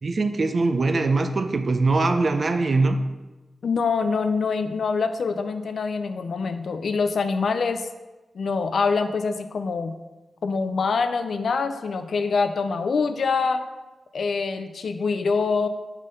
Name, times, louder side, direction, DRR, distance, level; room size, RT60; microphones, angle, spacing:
voice 1, 0.0-3.1, right 3 dB, 45° right, 8 dB, 0.5 m, -22 dB
voice 2, 3.6-7.9 8.3-10.0 10.4-13.6 14.1-15.7, left 4 dB, 70° left, 9 dB, 0.4 m, -25 dB
5.5 x 5.0 x 4.0 m, 1.1 s
wide cardioid pair, 120°, 0 cm